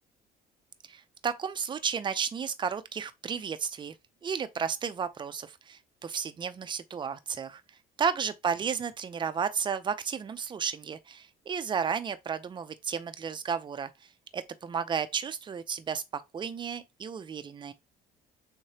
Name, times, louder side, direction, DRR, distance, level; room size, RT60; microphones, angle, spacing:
voice 1, 0.9-3.9 4.2-7.6 8.0-13.9 14.3-17.7, right 6 dB, 30° right, 0.5 m, -33 dB
3.6 x 3.2 x 2.8 m
cardioid pair, 110°, 17 cm